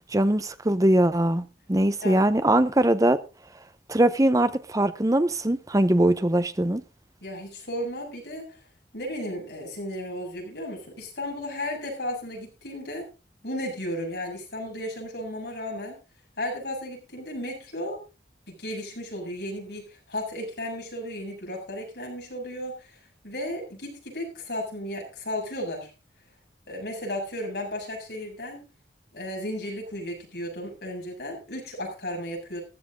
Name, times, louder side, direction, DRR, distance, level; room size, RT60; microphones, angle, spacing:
voice 1, 0.0-3.2 3.9-6.8, right 1 dB, 20° right, 0.8 m, -22 dB
voice 2, 7.2-8.6 8.9-13.1 13.4-16.0 16.4-18.0 18.5-25.9 26.7-28.6 29.1-32.6, left 1 dB, 65° left, 7.3 m, -34 dB
15.0 x 12.0 x 3.8 m
head